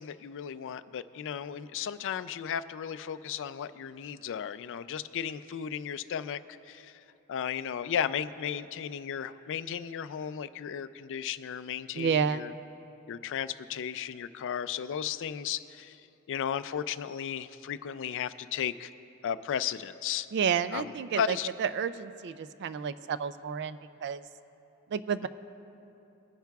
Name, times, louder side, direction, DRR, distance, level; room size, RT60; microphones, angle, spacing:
voice 1, 0.0-6.4 6.7-6.9 7.3-12.5 13.1-16.0 16.3-18.9 19.2-20.3 20.7-21.5, left 8 dB, 55° left, 13 dB, 0.3 m, -35 dB
voice 2, 11.9-12.5 20.3-24.2 24.9-25.3, right 7 dB, 50° right, 14 dB, 0.3 m, -30 dB
21.0 x 10.5 x 2.3 m, 2.9 s
head